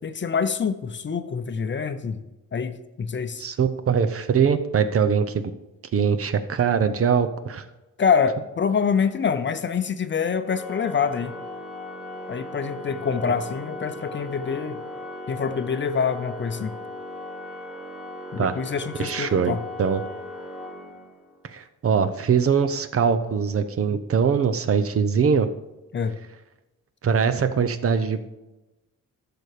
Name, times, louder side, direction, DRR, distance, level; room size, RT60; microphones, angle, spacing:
voice 1, 0.0-2.2 2.5-3.4 8.0-11.3 12.3-14.8 15.3-16.7 18.3-19.6 25.9-26.2, left 6 dB, 35° left, 10 dB, 0.7 m, -25 dB
voice 2, 3.4-5.5 5.9-7.6 18.4-18.6 19.0-20.0 21.5-25.5 27.0-28.2, right 6 dB, 45° right, 10 dB, 0.8 m, -22 dB
Organ, 10.4-21.4, left 2 dB, 5° right, 1.8 m, -37 dB
12.0 x 6.9 x 5.0 m, 1.0 s
cardioid pair, 130°, 33 cm